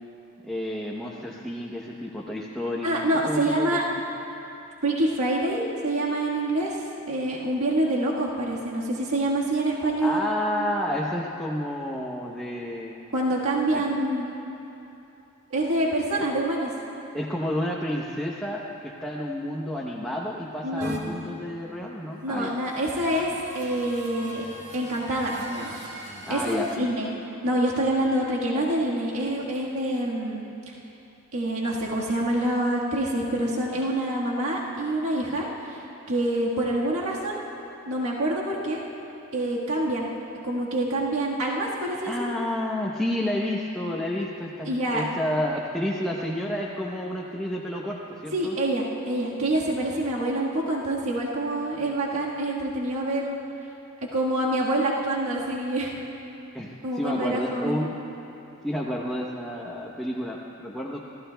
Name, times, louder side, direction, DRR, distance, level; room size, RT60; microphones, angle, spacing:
voice 1, 0.4-3.8 10.0-13.0 13.7-13.8 17.1-22.5 26.2-26.8 42.1-48.5 56.5-57.9 58.6-61.0, left 1 dB, ahead, -4 dB, 0.8 m, -30 dB
voice 2, 2.8-3.8 4.8-10.2 10.6-10.7 13.1-14.3 15.5-16.7 20.6-21.0 22.2-24.4 24.7-25.8 26.3-27.1 27.4-30.4 31.3-35.8 36.1-37.4 37.9-38.8 39.3-40.1 40.4-42.3 44.7-45.0 48.3-53.4 54.1-55.9 56.8-57.8, right 1 dB, 75° right, -4 dB, 1.6 m, -26 dB
sound 1, 20.8-21.0 22.4-26.8, right 1 dB, 50° right, 2.0 m, -41 dB
27.5 x 15.5 x 2.3 m, 2.9 s
head